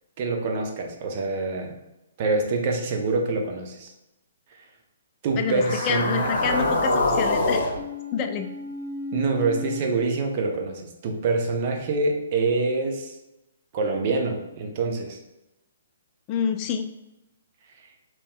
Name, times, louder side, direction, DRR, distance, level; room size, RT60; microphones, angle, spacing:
voice 1, 0.2-1.8 2.2-3.9 5.2-6.8 9.1-13.2 13.7-15.2, right 3 dB, 40° right, 3 dB, 0.7 m, -26 dB
sound 1, 5.4-9.8, left 2 dB, 55° left, 0.9 m, -26 dB
voice 2, 5.4-7.6 8.1-8.5 16.3-16.9, left 7 dB, 30° left, 6 dB, 0.4 m, -28 dB
5.2 x 3.0 x 2.2 m, 0.93 s
figure-of-eight pair, 130°, 0 cm